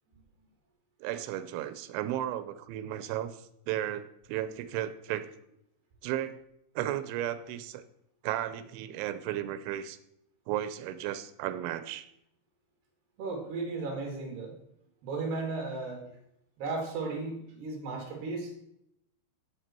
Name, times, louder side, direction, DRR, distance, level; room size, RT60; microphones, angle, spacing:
voice 1, 1.0-5.3 6.0-6.4 6.8-7.8 8.2-10.0 10.5-12.1, right 12 dB, 85° right, 13 dB, 3.2 m, -34 dB
voice 2, 13.2-14.5 15.0-16.1 16.6-18.5, right 3 dB, 65° right, 2 dB, 4.2 m, -35 dB
17.0 x 6.8 x 4.4 m, 0.78 s
omnidirectional pair, 5.3 m